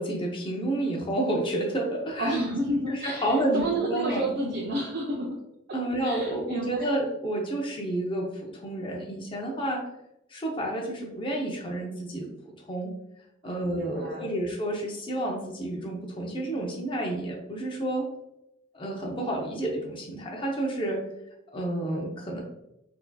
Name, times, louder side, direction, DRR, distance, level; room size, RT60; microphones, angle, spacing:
voice 1, 0.0-2.4 2.9-4.3 5.7-9.8 10.3-12.3 12.7-12.9 13.4-18.1 18.7-21.0 21.5-22.4, right 1 dB, 25° left, 0 dB, 0.6 m, -30 dB
voice 2, 2.2-5.4 6.0-6.9 13.4-14.3, right 1 dB, 50° right, -5 dB, 0.6 m, -30 dB
4.3 x 2.7 x 2.2 m, 0.84 s
head